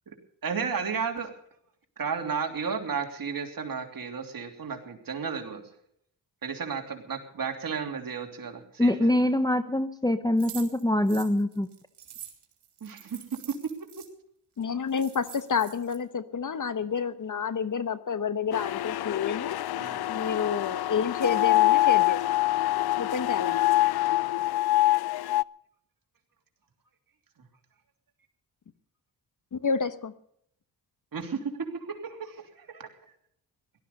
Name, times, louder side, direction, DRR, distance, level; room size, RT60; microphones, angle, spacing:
voice 1, 0.4-1.3 2.0-5.6 6.4-9.1 12.8-13.2 13.6-13.7 19.7-20.0 31.1-32.9, right 6 dB, 55° right, 4 dB, 3.1 m, -33 dB
voice 2, 8.8-11.7, left 1 dB, 10° left, 8 dB, 1.0 m, -24 dB
sound 1, 10.4-14.1 14.6-14.7 14.9-16.0, right 10 dB, 75° right, 3.4 m, -46 dB
voice 3, 14.6-19.6 20.1-22.2 23.0-23.6 29.5-30.1, left 6 dB, 45° left, 13 dB, 1.0 m, -29 dB
sound 2, 18.5-25.4, left 16 dB, 65° left, 0.5 m, -25 dB
17.5 x 13.0 x 5.4 m, 0.69 s
cardioid pair, 75°, 42 cm